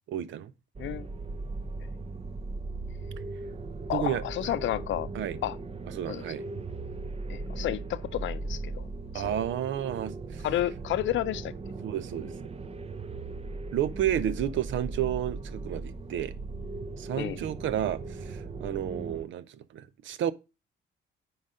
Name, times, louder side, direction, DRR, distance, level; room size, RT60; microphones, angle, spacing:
voice 1, 0.1-0.5 3.9-4.5 5.1-5.4 5.9-6.4 9.1-10.5 11.8-12.3 13.7-16.3 17.0-20.3, right 11 dB, 70° right, 0.7 m, -31 dB
sound 1, 0.8-19.2, right 3 dB, 30° right, 0.7 m, -38 dB
voice 2, 3.9-5.1 5.4-5.6 6.1-6.2 7.3-8.9 9.1-9.4 10.4-11.7 17.2-17.4, left 13 dB, 70° left, 0.6 m, -31 dB
9.6 x 4.0 x 4.9 m
cardioid pair, 90°, 20 cm